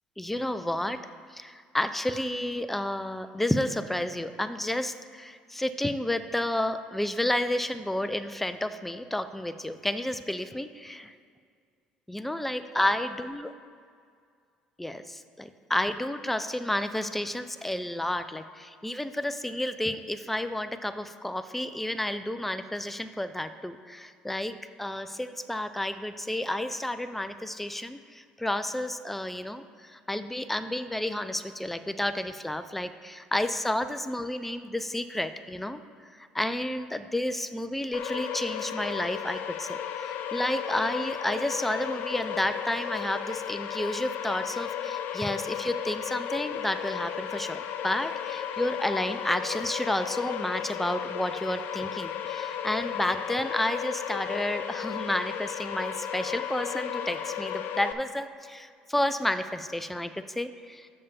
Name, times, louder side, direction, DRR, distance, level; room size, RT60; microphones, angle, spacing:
voice 1, 0.2-1.0 1.3-11.1 12.1-13.5 14.8-35.8 36.1-60.9, left 1 dB, 5° left, 11 dB, 0.4 m, -31 dB
sound 1, 37.9-57.9, left 9 dB, 70° left, 0.5 m, -34 dB
6.7 x 5.5 x 6.7 m, 2.2 s
supercardioid pair, 80°, 3 cm